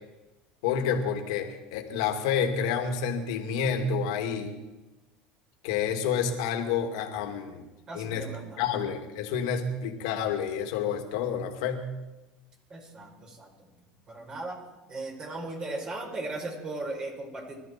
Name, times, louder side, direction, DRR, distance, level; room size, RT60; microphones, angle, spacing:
voice 1, 0.6-4.5 5.6-7.7 7.9-8.3 8.6-11.8, left 7 dB, 80° left, 4 dB, 2.6 m, -29 dB
voice 2, 7.9-8.6 12.7-13.5 14.1-14.6 14.9-17.6, right 2 dB, 30° right, 1 dB, 4.7 m, -37 dB
24.0 x 13.5 x 4.5 m, 1.1 s
supercardioid pair, 115°, 3 cm